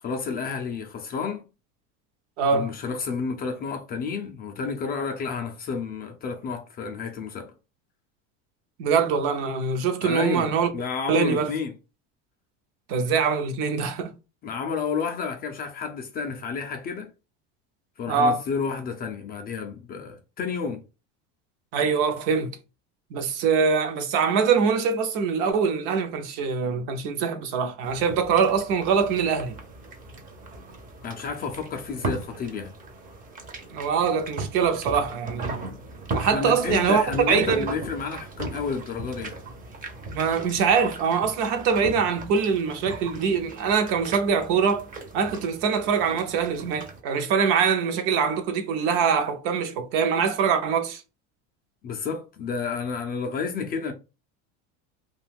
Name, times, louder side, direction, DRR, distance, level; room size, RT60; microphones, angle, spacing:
voice 1, 0.0-1.4 2.5-7.5 10.0-11.7 14.4-17.1 18.0-20.8 31.0-32.7 36.1-39.4 51.8-53.9, left 5 dB, 25° left, 0.3 m, -31 dB
voice 2, 2.4-2.7 8.8-10.7 11.1-11.5 12.9-14.1 18.1-18.4 21.7-22.5 23.1-29.6 33.7-35.7 36.1-37.7 40.1-44.9 45.1-51.0, right 6 dB, 65° right, 0.7 m, -23 dB
sound 1, 27.8-47.0, right 2 dB, 25° right, 0.5 m, -38 dB
2.5 x 2.3 x 3.3 m
cardioid pair, 140°, 36 cm